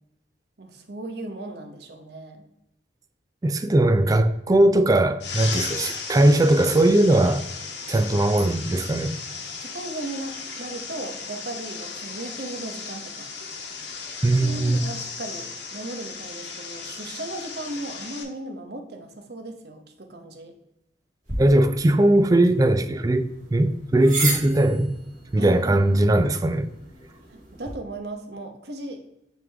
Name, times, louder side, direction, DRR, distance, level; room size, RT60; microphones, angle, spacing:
voice 1, 0.6-2.4 9.6-13.3 14.4-20.5 25.3-25.8 27.3-29.0, right 2 dB, 65° right, 1.0 m, -36 dB
voice 2, 3.4-7.5 7.9-9.2 14.2-14.8 21.4-25.0 25.3-26.7, right 1 dB, 20° right, 0.3 m, -19 dB
sound 1, 5.2-18.2, left 5 dB, 80° left, 1.2 m, -36 dB
sound 2, 21.2-27.7, right 2 dB, 45° right, 2.6 m, -35 dB
9.2 x 3.6 x 3.4 m
head